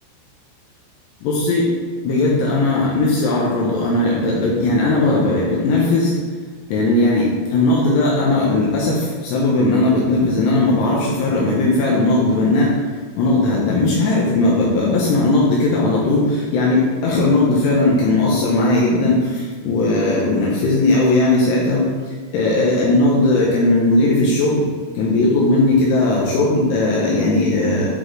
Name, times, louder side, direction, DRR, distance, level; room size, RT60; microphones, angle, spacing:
voice 1, 1.2-1.7 2.0-6.1 6.7-12.7 13.2-21.9 22.3-24.7 25.0-27.9, left 2 dB, 90° left, -4 dB, 2.4 m, -17 dB
9.9 x 4.1 x 3.2 m, 1.5 s
omnidirectional pair, 6.0 m